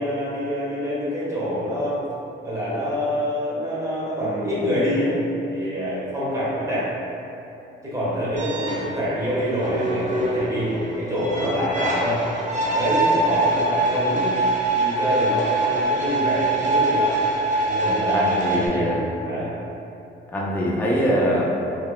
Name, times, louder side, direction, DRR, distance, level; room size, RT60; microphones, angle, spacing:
voice 1, 0.0-2.0 2.4-5.2 5.5-6.9 7.8-12.2 12.6-14.3 14.7-17.2 17.6-18.9 19.2-19.5, equal, 15° right, -9 dB, 1.2 m, -25 dB
sound 1, 8.4-18.7, right 2 dB, 40° right, 0.6 m, -24 dB
voice 2, 17.8-19.1 20.3-21.4, equal, 10° left, -4 dB, 0.4 m, -23 dB
3.2 x 2.8 x 2.2 m, 2.8 s
cardioid pair, 90°, 20 cm